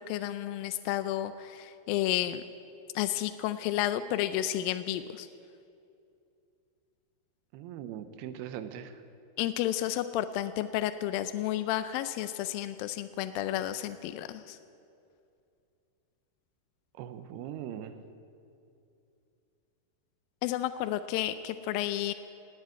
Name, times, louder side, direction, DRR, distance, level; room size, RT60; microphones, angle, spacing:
voice 1, 0.1-2.4 3.0-5.3 9.4-14.6 20.4-22.1, left 13 dB, 80° left, 11 dB, 2.1 m, -31 dB
voice 2, 7.5-8.9 17.0-18.0, right 10 dB, 90° right, 10 dB, 2.7 m, -40 dB
18.5 x 8.3 x 9.4 m, 2.6 s
omnidirectional pair, 4.5 m